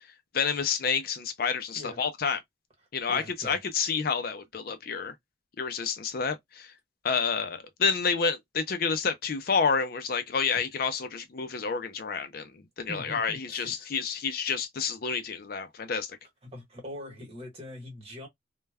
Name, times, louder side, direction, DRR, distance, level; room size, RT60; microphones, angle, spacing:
voice 1, 0.3-2.4 2.9-5.1 5.6-6.7 7.0-12.5 12.8-16.2, left 5 dB, 50° left, 0.4 m, -29 dB
voice 2, 3.1-3.6 10.5-10.6 12.9-13.9 16.4-18.3, left 1 dB, 30° right, 1.2 m, -42 dB
2.2 x 2.1 x 3.3 m
head